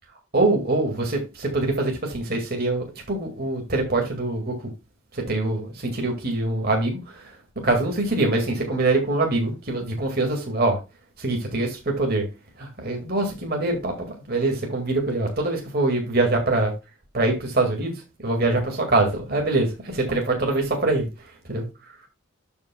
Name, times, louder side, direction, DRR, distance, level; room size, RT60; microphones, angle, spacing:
voice 1, 0.3-4.6 5.1-7.2 7.6-10.8 11.2-12.3 12.6-13.9 14.3-16.7 17.1-17.9 18.2-21.1 21.5-21.7, right 2 dB, 45° right, 1 dB, 2.0 m, -24 dB
12.5 x 5.4 x 2.2 m, 0.26 s
head